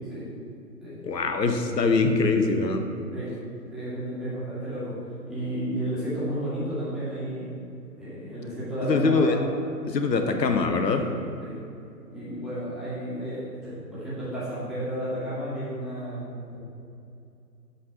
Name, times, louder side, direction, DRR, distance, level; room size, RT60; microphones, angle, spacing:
voice 1, 1.0-2.9 8.8-9.4 9.9-11.0, left 4 dB, 80° left, 6 dB, 0.9 m, -23 dB
voice 2, 3.7-4.9 5.2-7.6 8.0-9.5 10.9-11.1 11.4-11.6 12.1-16.6, right 1 dB, ahead, -12 dB, 1.8 m, -32 dB
7.7 x 3.9 x 5.7 m, 2.6 s
figure-of-eight pair, 130°, 49 cm